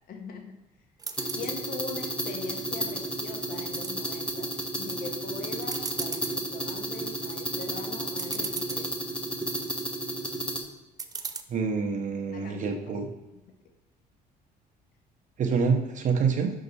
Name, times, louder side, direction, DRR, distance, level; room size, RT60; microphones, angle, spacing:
voice 1, 0.1-0.6 1.3-4.5 4.7-8.9 12.2-13.0, left 4 dB, 60° left, 4 dB, 0.8 m, -41 dB
sound 1, 1.0-1.4 1.9-2.7 3.1-3.9 4.4-4.9 5.2-5.3 5.6-6.4 6.9-7.2 7.8-7.9 8.1-8.8 9.3-9.9 11.0-11.4, right 5 dB, 20° right, 0.5 m, -37 dB
sound 2, 1.2-10.6, right 1 dB, 5° left, 1.0 m, -32 dB
voice 2, 11.5-13.1 15.4-16.5, right 5 dB, 45° right, 4 dB, 1.1 m, -26 dB
5.7 x 5.3 x 4.0 m, 1.0 s
cardioid pair, 110°, 17 cm